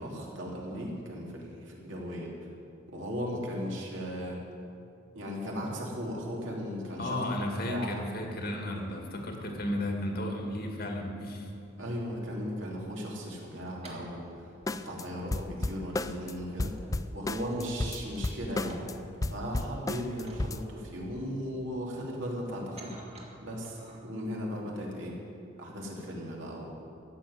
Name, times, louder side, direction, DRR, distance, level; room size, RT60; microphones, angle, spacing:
voice 1, 0.0-2.3 2.9-4.4 5.1-7.2 7.7-8.0 11.8-16.7 17.1-18.8 19.3-22.9 23.4-25.2 25.6-26.7, equal, 65° right, -2 dB, 3.0 m, -37 dB
voice 2, 7.0-11.5, left 1 dB, 50° left, 1 dB, 2.0 m, -33 dB
sound 1, 8.9-11.0 11.5-24.0, right 1 dB, 30° right, 1.9 m, -55 dB
sound 2, 14.7-15.0 15.3-16.3 16.6-18.9 19.2-20.6, left 2 dB, 15° left, 0.3 m, -33 dB
14.0 x 7.6 x 9.5 m, 2.5 s
head